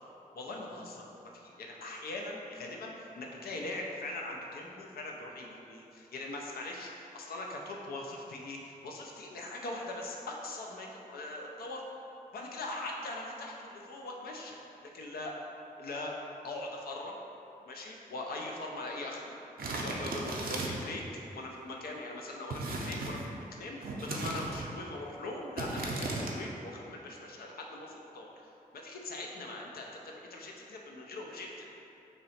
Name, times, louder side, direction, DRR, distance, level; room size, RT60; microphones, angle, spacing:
voice 1, 0.3-11.8 12.3-14.5 14.9-15.3 15.8-16.1 16.4-17.1 17.7-19.4 19.8-21.0 21.3-28.3 28.7-31.7, left 2 dB, 90° left, 0 dB, 0.5 m, -41 dB
sound 1, 19.6-20.9 22.5-23.3 23.8-24.7 25.6-26.3, right 2 dB, 75° right, 0.5 m, -36 dB
3.0 x 2.8 x 4.1 m, 2.8 s
cardioid pair, 70°, 15 cm